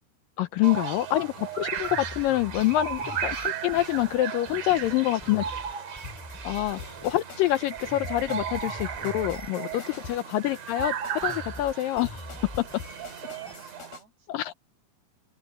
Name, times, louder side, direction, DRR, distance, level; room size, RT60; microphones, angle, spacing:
voice 1, 0.4-5.4 6.4-6.8 7.0-9.8 10.1-12.3 14.3-14.5, left 15 dB, 80° left, 2.0 m, -26 dB
sound 1, 0.6-14.0, right 8 dB, 50° right, 2.9 m, -35 dB
sound 2, 1.8-7.2 7.5-10.2 10.5-13.5, left 1 dB, 5° left, 1.2 m, -44 dB
voice 2, 3.0-3.3 4.6-6.1 9.5-10.3 12.3-12.6 13.2-14.6, right 5 dB, 80° right, 8.4 m, -53 dB
sound 3, 6.0-14.0, left 6 dB, 65° left, 5.7 m, -45 dB
omnidirectional pair, 4.7 m